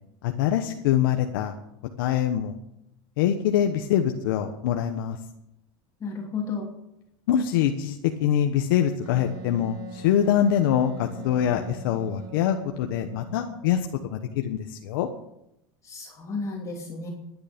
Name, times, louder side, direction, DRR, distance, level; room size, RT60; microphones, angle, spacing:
voice 1, 0.2-1.5 2.0-2.6 3.2-5.2 7.3-13.8 14.1-15.1, left 10 dB, 80° left, 5 dB, 1.2 m, -24 dB
voice 2, 6.0-6.7 15.8-17.1, left 4 dB, 30° left, 0 dB, 2.7 m, -32 dB
Wind instrument woodwind instrument, 9.0-13.7, right 3 dB, 45° right, 3.3 m, -43 dB
22.5 x 9.7 x 5.2 m, 0.83 s
supercardioid pair, 135°, 11 cm